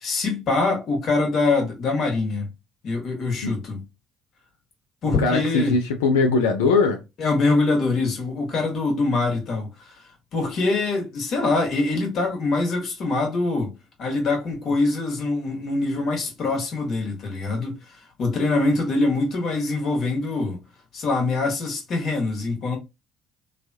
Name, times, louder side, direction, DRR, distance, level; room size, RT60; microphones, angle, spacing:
voice 1, 0.0-2.5 2.8-3.8 5.0-5.8 7.2-9.9 10.3-13.7 14.0-20.6 20.9-22.8, left 3 dB, 60° left, 1.4 m, -24 dB
voice 2, 5.2-7.0, left 4 dB, 90° left, 0.4 m, -20 dB
3.1 x 2.3 x 2.7 m
hypercardioid pair, 60°, 0 cm